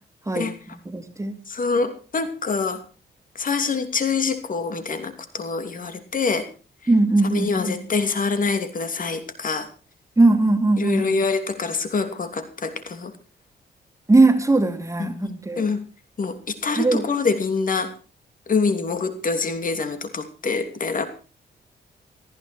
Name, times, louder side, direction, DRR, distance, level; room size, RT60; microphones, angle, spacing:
voice 1, 0.3-1.4 6.9-7.8 10.2-11.1 14.1-15.7 16.8-17.1, right 2 dB, 15° right, 8 dB, 2.5 m, -20 dB
voice 2, 1.5-2.8 3.3-6.5 7.3-9.7 10.8-13.1 15.0-15.8 16.2-17.9 18.5-21.1, left 4 dB, 45° left, 9 dB, 2.9 m, -25 dB
19.0 x 14.0 x 4.5 m, 0.35 s
cardioid pair, 95°, 19 cm